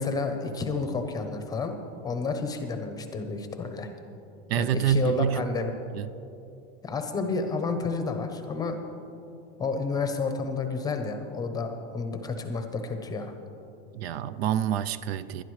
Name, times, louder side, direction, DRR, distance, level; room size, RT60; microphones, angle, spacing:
voice 1, 0.0-1.8 2.0-3.9 4.6-5.7 6.8-8.8 9.6-13.3, left 4 dB, 10° left, 0.7 m, -30 dB
voice 2, 4.5-5.4 5.9-6.1 13.9-15.4, right 10 dB, 65° right, 0.5 m, -27 dB
20.0 x 12.0 x 3.2 m
supercardioid pair, 155°, 33 cm